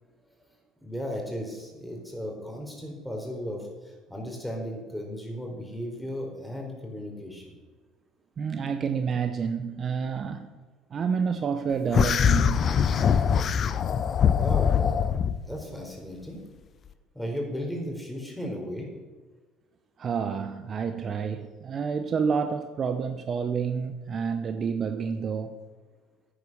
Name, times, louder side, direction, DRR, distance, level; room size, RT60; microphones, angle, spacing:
voice 1, 0.8-7.5 14.3-14.7 15.4-16.4 17.1-18.9, equal, ahead, 4.4 m, -35 dB
voice 2, 8.4-10.5 10.9-12.8 20.0-25.6, right 6 dB, 40° right, 0.9 m, -29 dB
sound 1, 11.9-15.4, left 7 dB, 45° left, 0.7 m, -22 dB
10.5 x 9.4 x 6.4 m
hypercardioid pair, 65°, 0 cm